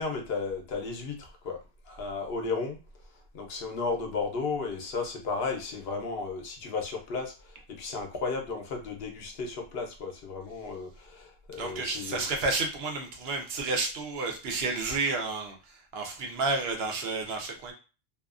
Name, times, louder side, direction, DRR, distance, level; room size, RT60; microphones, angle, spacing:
voice 1, 0.0-1.6 1.9-2.8 3.3-12.3, left 4 dB, 70° left, 3 dB, 0.9 m, -34 dB
voice 2, 11.6-17.7, right 3 dB, 75° right, 2 dB, 0.9 m, -31 dB
2.6 x 2.3 x 2.4 m, 0.32 s
omnidirectional pair, 1.1 m